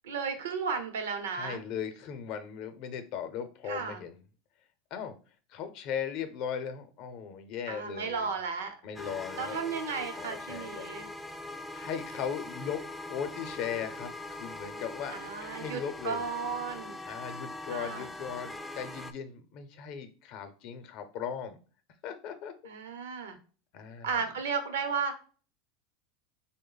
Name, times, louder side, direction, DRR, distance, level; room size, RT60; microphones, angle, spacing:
voice 1, 0.0-1.6 3.7-4.0 7.7-8.8 9.4-11.1 15.1-17.0 17.7-18.1 22.6-23.4 24.0-25.1, right 5 dB, 85° right, 7 dB, 0.7 m, -34 dB
voice 2, 1.3-4.2 4.9-5.2 5.5-8.3 8.8-9.6 10.2-10.9 11.7-16.2 17.0-21.6 22.0-22.5 23.7-24.3, left 8 dB, 55° left, 9 dB, 0.6 m, -38 dB
sound 1, 9.0-19.1, left 2 dB, 5° left, 0.3 m, -42 dB
3.1 x 2.1 x 3.8 m, 0.38 s
supercardioid pair, 115°, 0 cm